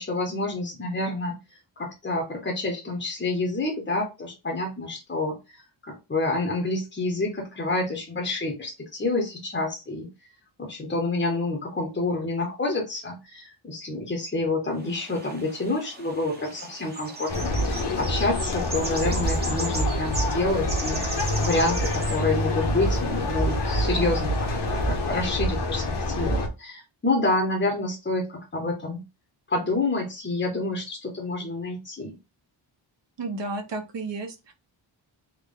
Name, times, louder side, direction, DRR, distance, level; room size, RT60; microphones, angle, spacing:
voice 1, 0.0-1.4 1.8-5.6 5.8-10.1 10.6-29.0 29.5-32.2, left 2 dB, 25° left, 1 dB, 0.7 m, -28 dB
sound 1, 14.8-25.3, right 2 dB, 20° right, 0.7 m, -38 dB
sound 2, 17.3-26.5, left 1 dB, 55° left, 0.9 m, -26 dB
voice 2, 33.2-34.5, right 3 dB, 60° right, 6 dB, 0.9 m, -32 dB
3.6 x 2.2 x 3.6 m, 0.25 s
wide cardioid pair, 165°, 49 cm